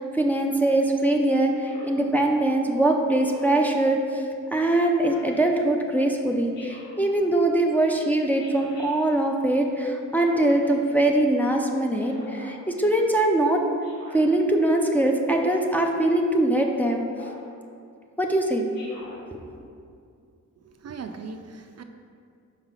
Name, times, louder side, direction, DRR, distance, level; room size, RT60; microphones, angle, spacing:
voice 1, 0.0-4.2 4.5-13.6 14.1-17.1 18.2-18.6 19.3-19.4, right 1 dB, 5° left, 1 dB, 0.5 m, -22 dB
Speech synthesizer, 1.7-2.0 3.2-3.6 5.0-5.4 6.5-7.0 8.4-8.9 10.1-10.7 12.0-12.5 13.8-14.2 15.4-15.8 17.1-17.5 18.7-19.2, equal, 75° left, 1.7 m, -45 dB
voice 2, 20.6-21.8, right 4 dB, 55° right, 6 dB, 0.4 m, -39 dB
5.6 x 4.8 x 5.7 m, 2.4 s
wide cardioid pair, 150°, 32 cm